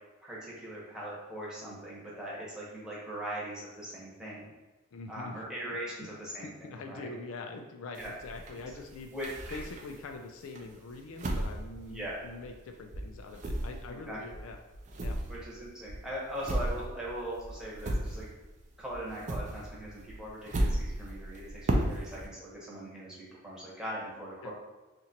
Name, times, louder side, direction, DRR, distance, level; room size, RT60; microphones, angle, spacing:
voice 1, 0.2-4.5 5.1-6.5 6.9-7.1 8.0-8.1 8.5-8.7 9.1-9.6 11.9-12.2 14.1-14.2 15.3-18.3 18.8-24.5, right 1 dB, 5° right, -7 dB, 1.0 m, -40 dB
voice 2, 4.9-5.4 5.7-5.8 6.4-9.1 9.5-14.6 15.0-15.2 16.7-16.8 24.4-24.5, left 3 dB, 70° left, 4 dB, 0.4 m, -44 dB
sound 1, 8.0-10.1 10.6-12.7 12.9-18.6 18.9-22.3, right 1 dB, 35° right, 0.4 m, -35 dB
2.9 x 2.5 x 4.2 m, 1.2 s
head